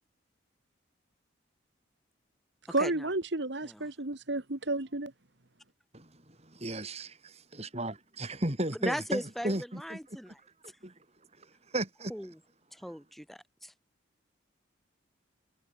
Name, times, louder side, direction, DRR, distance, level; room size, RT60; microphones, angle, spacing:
voice 1, 2.7-5.1, right 2 dB, 60° right, 1.6 m, -31 dB
voice 2, 5.9-10.0 10.3-10.4 10.8-10.9 11.4-12.1, right 1 dB, 30° right, 3.6 m, -35 dB
voice 3, 8.8-10.4 12.1-12.4 12.7-13.7, equal, ahead, 4.2 m, -38 dB
head